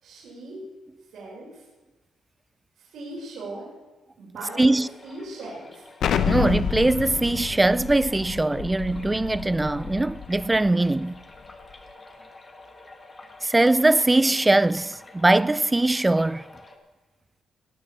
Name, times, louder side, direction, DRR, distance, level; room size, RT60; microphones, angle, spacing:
voice 1, 0.0-0.6 1.1-1.6 2.8-3.7 4.2-5.8, right 2 dB, 70° right, 4.9 m, -39 dB
sound 1, 4.3-16.8, left 2 dB, 25° left, 1.6 m, -48 dB
voice 2, 4.6-4.9 6.2-11.2 13.4-16.5, right 2 dB, 15° right, 0.3 m, -21 dB
Explosion, 6.0-10.7, left 8 dB, 70° left, 0.7 m, -29 dB
18.0 x 6.1 x 6.7 m
cardioid pair, 90°, 0 cm